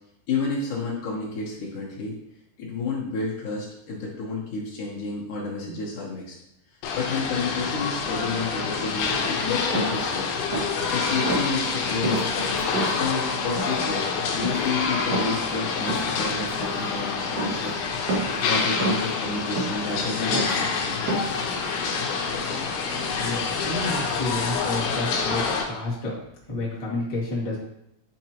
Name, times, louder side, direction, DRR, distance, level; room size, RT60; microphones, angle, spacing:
voice 1, 0.3-2.2 2.6-6.3 6.9-10.3 10.9-12.6 12.9-14.0 14.3-21.1, left 4 dB, 60° left, -4 dB, 2.4 m, -30 dB
sound 1, 6.8-25.6, left 5 dB, 80° left, 2.8 m, -27 dB
sound 2, 9.7-10.0 10.5-10.8 11.2-11.5 12.0-13.0 13.5-13.8 14.3-14.7 15.1-15.5 15.9-16.2 16.5-16.9 17.4-17.7 18.1-18.5 18.8-19.1 19.6-20.0 20.3-20.6 21.1-21.4, right 2 dB, 85° right, 4.0 m, -29 dB
voice 2, 23.2-26.1 26.5-27.6, left 2 dB, 30° left, -7 dB, 0.7 m, -30 dB
9.6 x 4.4 x 3.0 m, 0.79 s
omnidirectional pair, 4.6 m